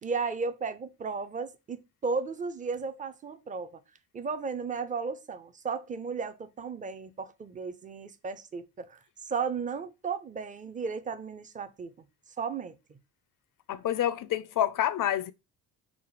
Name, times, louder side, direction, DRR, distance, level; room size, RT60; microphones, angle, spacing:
voice 1, 0.0-3.8 4.1-9.0 9.3-11.9 12.4-13.0, right 5 dB, 15° right, 0.4 m, -34 dB
voice 2, 13.7-15.3, left 11 dB, 45° left, 0.4 m, -28 dB
3.4 x 2.1 x 3.9 m
hypercardioid pair, 50°, 48 cm